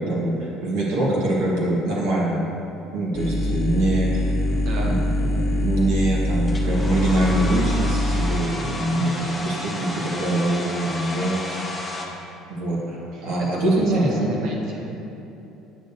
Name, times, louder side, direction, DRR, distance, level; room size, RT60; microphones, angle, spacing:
voice 1, 0.0-2.4 2.9-4.3 4.8-11.8 12.5-14.4, right 1 dB, 80° right, -6 dB, 1.3 m, -24 dB
sound 1, 3.1-8.3, left 1 dB, 40° left, 0.8 m, -23 dB
voice 2, 4.5-4.9 8.9-9.4 13.1-15.0, right 1 dB, 50° right, -2 dB, 1.2 m, -33 dB
Domestic sounds home sounds, 6.5-12.1, left 2 dB, 5° left, 0.7 m, -32 dB
8.6 x 6.6 x 2.7 m, 2.9 s
cardioid pair, 165°, 0 cm